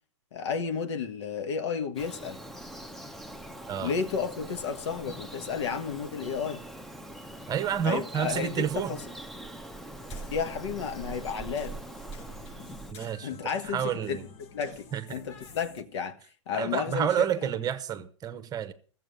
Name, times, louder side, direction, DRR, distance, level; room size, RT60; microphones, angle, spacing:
voice 1, 0.3-2.4 3.8-6.6 7.8-9.0 10.3-11.7 13.2-16.2 16.5-17.5, left 6 dB, 70° left, 1.5 m, -32 dB
Bird vocalization bird call bird song, 2.0-12.9, right 1 dB, ahead, 0.8 m, -42 dB
voice 2, 7.5-9.0 12.9-13.4 13.7-14.2 14.9-15.0 16.5-18.7, right 9 dB, 25° right, 1.1 m, -29 dB
sound 1, 10.0-15.8, left 6 dB, 40° left, 1.3 m, -50 dB
14.0 x 7.7 x 6.5 m
hypercardioid pair, 105°, 15 cm